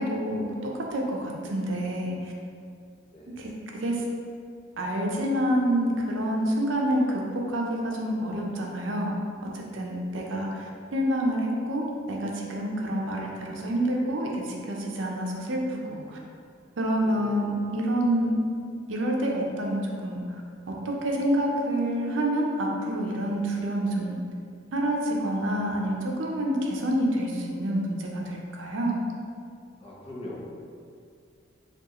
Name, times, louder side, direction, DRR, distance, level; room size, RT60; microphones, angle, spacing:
voice 1, 0.0-2.3 3.4-4.0 4.8-9.2 9.5-16.2 16.8-18.3 18.9-20.2 20.7-24.1 24.7-29.1, right 1 dB, 80° right, -1 dB, 0.5 m, -28 dB
voice 2, 10.1-10.6 17.0-17.4 29.8-30.4, left 1 dB, 35° left, -5 dB, 0.7 m, -42 dB
4.6 x 2.4 x 2.9 m, 2.3 s
head